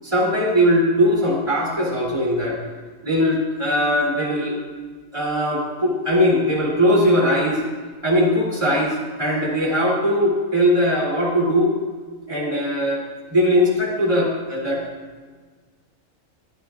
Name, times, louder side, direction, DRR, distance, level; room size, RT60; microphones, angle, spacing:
voice 1, 0.0-2.6 3.0-4.6 5.1-7.6 8.0-11.8 12.3-14.9, equal, 20° right, -4 dB, 3.2 m, -20 dB
20.0 x 12.0 x 2.5 m, 1.5 s
omnidirectional pair, 1.4 m